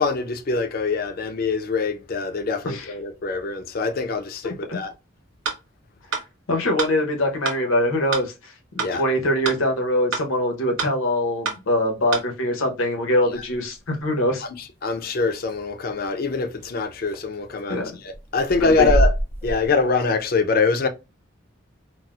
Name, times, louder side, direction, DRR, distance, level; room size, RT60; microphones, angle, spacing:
voice 1, 0.0-4.9 8.8-9.0 14.4-19.1 19.4-20.9, left 4 dB, 45° left, 0.4 m, -24 dB
voice 2, 4.4-4.8 6.5-14.4 17.7-17.9 18.6-18.9, left 1 dB, 85° left, 0.8 m, -23 dB
sound 1, 5.4-5.6 6.1-6.3 6.8-6.9 7.4-7.6 8.1-8.3 8.8-8.9 9.4-9.6 10.1-10.3 10.8-10.9 11.4-11.6 12.1-12.3, right 5 dB, 85° right, 0.8 m, -26 dB
sound 2, 13.3-13.8 15.5-15.6 16.6-16.7 17.0-17.6 18.1-20.0, right 1 dB, 10° right, 0.5 m, -25 dB
4.1 x 2.0 x 2.3 m
head